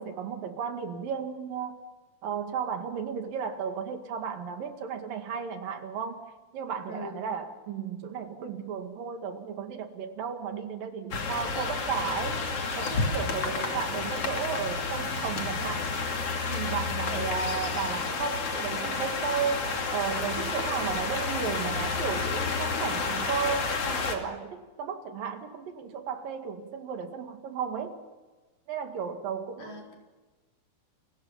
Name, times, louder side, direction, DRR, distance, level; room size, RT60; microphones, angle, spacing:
voice 1, 0.0-1.8 2.2-6.2 6.5-12.4 12.8-15.9 16.5-28.0 28.7-29.8, right 7 dB, 65° right, 6 dB, 3.6 m, -34 dB
voice 2, 6.9-7.3 13.5-13.8 17.1-17.6 29.6-29.9, left 2 dB, 65° left, 1 dB, 5.9 m, -42 dB
sound 1, 11.1-24.2, left 4 dB, 40° left, 3.2 m, -30 dB
29.5 x 24.0 x 5.7 m, 1.2 s
omnidirectional pair, 4.5 m